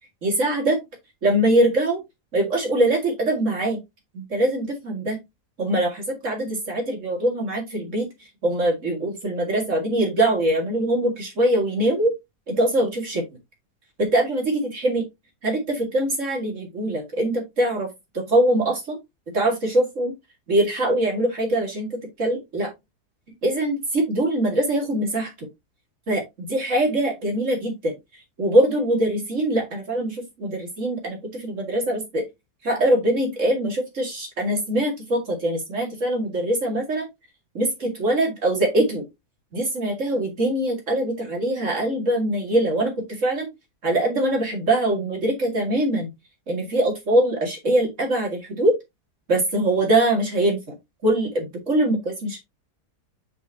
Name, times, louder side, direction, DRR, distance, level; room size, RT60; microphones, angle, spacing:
voice 1, 0.2-0.8 1.2-2.0 2.3-3.8 4.1-5.2 5.6-8.1 8.4-12.1 12.5-13.2 14.0-15.0 15.4-17.9 18.1-19.0 19.3-20.1 20.5-22.7 23.4-25.5 26.1-27.9 28.4-32.2 32.6-37.1 37.5-39.0 39.5-43.5 43.8-46.1 46.5-48.7 49.3-50.7 51.0-52.4, right 1 dB, 50° right, 1 dB, 2.5 m, -23 dB
7.0 x 5.2 x 2.9 m, 0.19 s
omnidirectional pair, 1.7 m